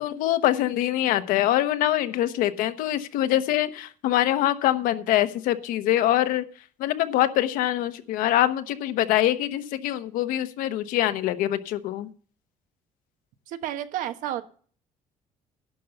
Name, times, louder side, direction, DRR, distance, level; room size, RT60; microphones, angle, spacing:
voice 1, 0.0-6.4 6.8-12.1, left 13 dB, 80° left, 10 dB, 1.0 m, -24 dB
voice 2, 13.5-14.4, right 12 dB, 70° right, 9 dB, 1.1 m, -31 dB
11.5 x 5.5 x 7.9 m, 0.43 s
cardioid pair, 175°, 14 cm